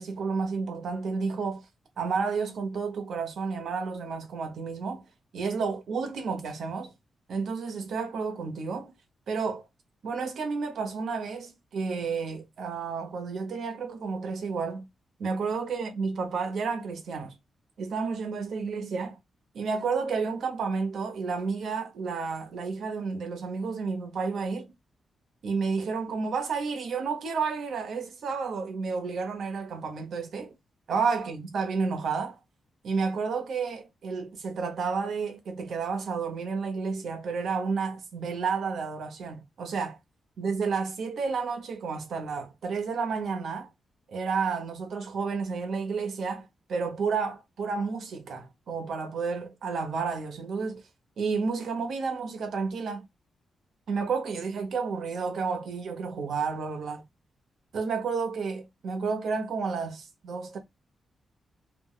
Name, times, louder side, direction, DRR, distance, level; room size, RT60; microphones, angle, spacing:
voice 1, 0.0-1.6 2.0-5.1 5.3-6.9 7.3-8.9 9.3-9.6 10.0-14.9 15.2-17.3 17.8-19.2 19.5-24.7 25.4-30.5 30.9-32.4 32.8-40.0 40.4-43.7 44.1-50.8 51.2-53.0 53.9-57.0 57.7-60.6, right 5 dB, 70° right, 0.8 m, -31 dB
2.5 x 2.1 x 3.8 m
cardioid pair, 115°, 0 cm